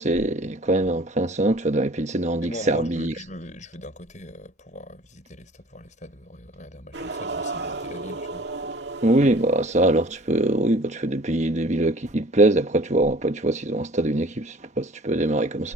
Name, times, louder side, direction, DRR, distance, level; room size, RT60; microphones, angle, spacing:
voice 1, 0.0-3.1 9.0-15.7, right 1 dB, 35° right, 1.3 m, -22 dB
voice 2, 2.4-8.5, left 1 dB, 40° left, 6.8 m, -41 dB
sound 1, 6.9-10.2, right 3 dB, 60° right, 2.4 m, -33 dB
head